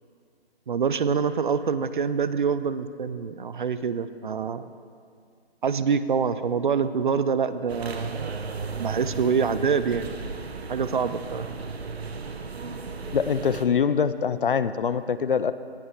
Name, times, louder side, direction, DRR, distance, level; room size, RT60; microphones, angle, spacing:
voice 1, 0.7-4.7 5.6-8.3 8.8-10.1 10.7-11.5, right 6 dB, 50° right, 13 dB, 0.5 m, -25 dB
sound 1, 7.7-13.7, right 4 dB, 75° right, 1.0 m, -35 dB
voice 2, 13.1-15.5, left 6 dB, 55° left, 14 dB, 0.5 m, -24 dB
18.0 x 9.5 x 3.3 m, 2.2 s
figure-of-eight pair, 150°, 32 cm